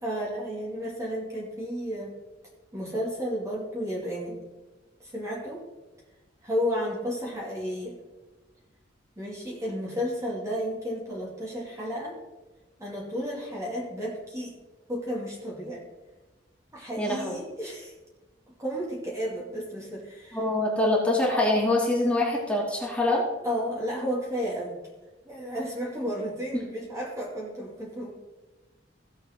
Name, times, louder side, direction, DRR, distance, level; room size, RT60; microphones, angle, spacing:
voice 1, 0.0-2.1 2.7-4.4 5.0-5.6 6.4-8.0 9.2-12.2 12.8-14.6 14.9-15.9 16.7-17.9 18.6-20.4 23.4-24.7 25.3-28.1, equal, 15° right, -4 dB, 2.4 m, -32 dB
voice 2, 17.0-17.3 20.3-23.2, left 1 dB, 5° left, -3 dB, 2.7 m, -24 dB
16.5 x 7.4 x 3.8 m, 1.2 s
head